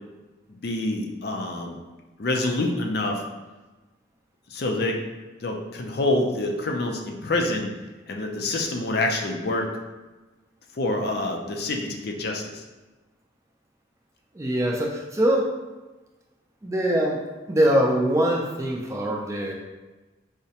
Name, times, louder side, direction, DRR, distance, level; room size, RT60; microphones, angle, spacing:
voice 1, 0.6-1.8 2.2-3.2 4.5-5.0 5.4-7.7 8.1-9.7 10.7-12.6, left 2 dB, 55° left, 2 dB, 0.5 m, -26 dB
voice 2, 14.4-15.4 16.6-17.2 17.5-19.5, right 1 dB, 15° right, -1 dB, 0.4 m, -23 dB
4.8 x 2.1 x 2.8 m, 1.2 s
head